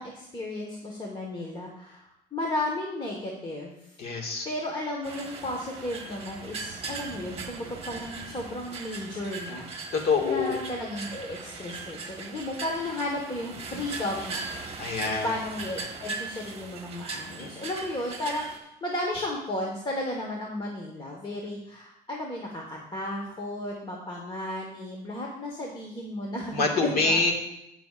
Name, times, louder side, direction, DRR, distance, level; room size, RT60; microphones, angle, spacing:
voice 1, 0.0-3.8 4.4-9.9 10.2-14.4 14.7-27.3, left 1 dB, 30° left, 0 dB, 1.4 m, -34 dB
voice 2, 4.0-4.5 9.9-10.6 14.8-15.3 17.4-17.7 26.5-27.3, left 4 dB, 70° left, 2 dB, 2.0 m, -26 dB
sound 1, 5.0-18.6, right 4 dB, 35° right, 1.4 m, -39 dB
17.0 x 6.1 x 2.5 m, 0.86 s
cardioid pair, 110°, 17 cm